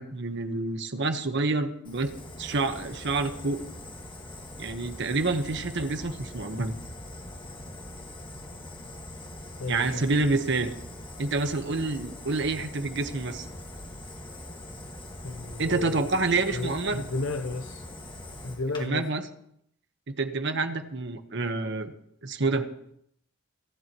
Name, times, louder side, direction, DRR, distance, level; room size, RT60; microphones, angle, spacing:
voice 1, 0.0-2.1 2.4-3.6 4.6-6.7 9.7-10.7 11.2-13.5 15.6-17.0 18.8-19.2 20.1-21.9 22.2-22.7, right 3 dB, 60° right, 8 dB, 1.2 m, -28 dB
Fire, 1.8-18.8, left 1 dB, 25° left, 1.9 m, -42 dB
voice 2, 9.6-10.1 14.2-14.3 15.2-16.1 16.5-17.9 18.4-19.1, left 3 dB, 70° left, 6 dB, 0.8 m, -33 dB
27.0 x 11.0 x 3.1 m, 0.71 s
head